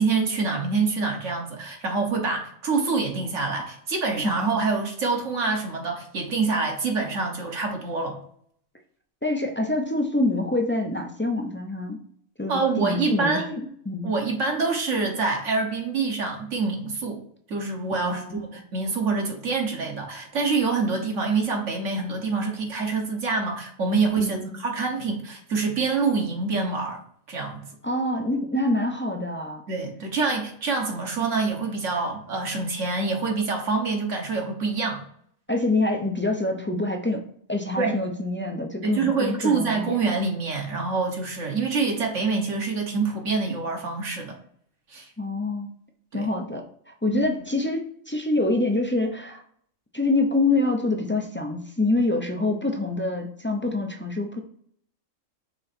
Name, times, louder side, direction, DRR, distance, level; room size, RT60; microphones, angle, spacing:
voice 1, 0.0-8.2 12.5-13.5 14.0-17.2 17.5-27.0 27.3-27.6 29.7-35.0 37.8-38.0 38.8-44.4 44.9-45.1 46.1-46.3 47.1-47.2, right 4 dB, 65° right, 1 dB, 1.4 m, -26 dB
voice 2, 9.2-12.0 12.4-13.4 13.9-14.1 17.9-18.3 24.2-24.5 27.8-29.6 35.5-37.2 37.5-40.0 45.2-45.7 46.1-46.6 47.0-49.4 49.9-54.4, left 2 dB, 15° left, 2 dB, 0.3 m, -26 dB
6.3 x 3.9 x 4.2 m, 0.63 s
omnidirectional pair, 1.4 m